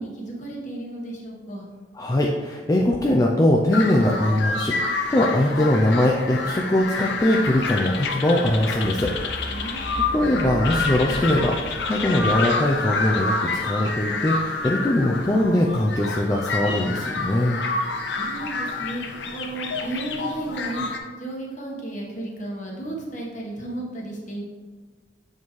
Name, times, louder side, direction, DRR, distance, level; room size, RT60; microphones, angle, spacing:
voice 1, 0.0-1.6 9.5-10.0 18.1-19.0 19.3-20.9 21.2-24.4, right 2 dB, 40° left, -3 dB, 1.2 m, -33 dB
voice 2, 2.0-9.1 9.4-9.7 10.1-17.6, left 1 dB, 20° left, -1 dB, 0.4 m, -21 dB
sound 1, 3.7-21.0, left 3 dB, 65° left, 0.6 m, -28 dB
sound 2, 8.0-16.1 16.6-16.7, left 1 dB, 85° left, 1.5 m, -37 dB
7.0 x 4.3 x 3.1 m, 1.4 s
head